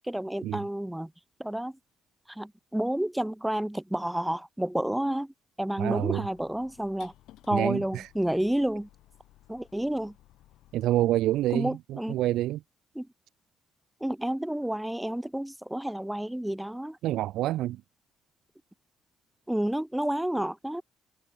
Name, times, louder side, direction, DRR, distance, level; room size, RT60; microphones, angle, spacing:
voice 1, 0.1-1.1 1.4-1.7 2.3-5.3 5.6-7.1 7.5-8.9 9.5-10.1 11.5-12.2 13.0-13.1 14.0-17.0 19.5-20.8, right 1 dB, 5° right, 0.7 m, -30 dB
voice 2, 5.8-6.2 7.5-8.1 10.7-12.6 17.0-17.8, right 14 dB, 85° right, 0.3 m, -27 dB
sound 1, 6.1-11.5, left 15 dB, 90° left, 6.0 m, -58 dB
cardioid pair, 90°, 0 cm